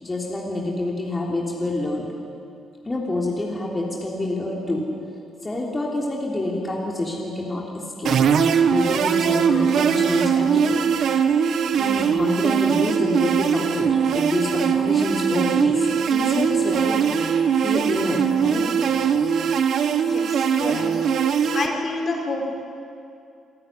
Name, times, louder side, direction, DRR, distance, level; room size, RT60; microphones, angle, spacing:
voice 1, 0.0-2.1 2.8-4.9 5.4-8.2 8.7-10.8 11.7-17.0 17.6-18.7 19.0-19.1, left 1 dB, 20° left, -2 dB, 3.4 m, -27 dB
sound 1, 8.0-21.7, right 7 dB, 65° right, 1.4 m, -21 dB
voice 2, 20.0-20.9 21.5-22.4, left 3 dB, 45° left, 1 dB, 4.6 m, -28 dB
27.0 x 13.5 x 9.9 m, 2.5 s
cardioid pair, 90°, 0 cm